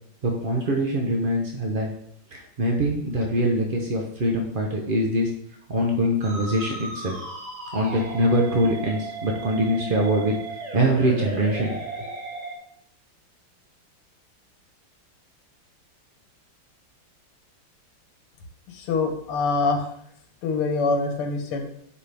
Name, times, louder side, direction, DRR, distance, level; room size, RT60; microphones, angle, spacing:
voice 1, 0.2-1.9 2.3-5.3 5.7-7.1 7.7-10.3 10.7-12.1, right 1 dB, 55° right, 0 dB, 0.5 m, -23 dB
Musical instrument, 6.2-12.6, right 3 dB, 20° right, 1.3 m, -35 dB
voice 2, 18.7-19.9 20.4-21.7, left 4 dB, 80° left, 5 dB, 2.0 m, -25 dB
9.6 x 5.0 x 3.5 m, 0.70 s
omnidirectional pair, 2.4 m